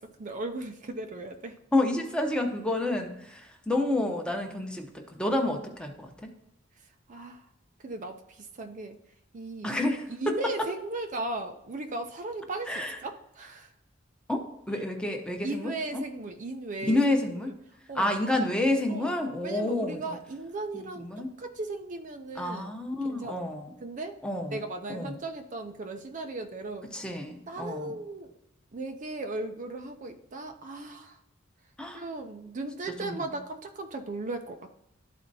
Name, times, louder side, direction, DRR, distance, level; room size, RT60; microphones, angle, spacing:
voice 1, 0.2-1.5 7.1-7.4 7.8-8.2 8.6-9.0 9.3-9.7 10.2-13.7 15.4-17.1 17.9-18.1 18.9-19.1 19.4-22.7 23.1-23.4 23.8-24.2 24.5-26.9 27.5-28.3 28.7-31.2 31.9-34.7, right 2 dB, 40° right, 5 dB, 0.5 m, -36 dB
voice 2, 1.7-6.1 9.6-10.7 12.7-13.0 14.3-16.0 16.9-17.5 17.9-20.2 20.7-21.3 22.4-23.7 24.2-24.6 24.9-25.2 26.9-28.0 31.8-32.0 33.0-33.4, left 1 dB, 5° left, 3 dB, 0.8 m, -29 dB
12.5 x 4.2 x 2.7 m, 0.83 s
head